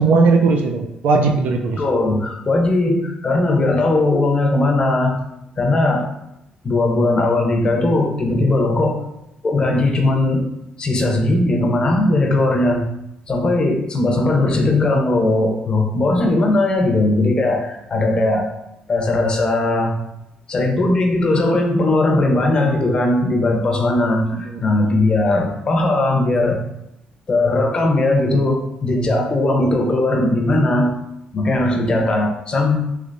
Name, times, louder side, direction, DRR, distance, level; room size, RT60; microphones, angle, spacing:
voice 1, 0.0-1.8 24.3-25.0, right 4 dB, 70° right, 3 dB, 0.4 m, -18 dB
voice 2, 1.8-5.2 5.6-6.1 6.6-9.0 9.4-10.4 10.8-12.9 13.3-18.5 18.9-19.9 20.5-26.6 27.3-30.9 31.3-32.8, left 2 dB, 30° left, 2 dB, 0.6 m, -18 dB
3.2 x 2.9 x 2.6 m, 0.83 s
cardioid pair, 125°, 3 cm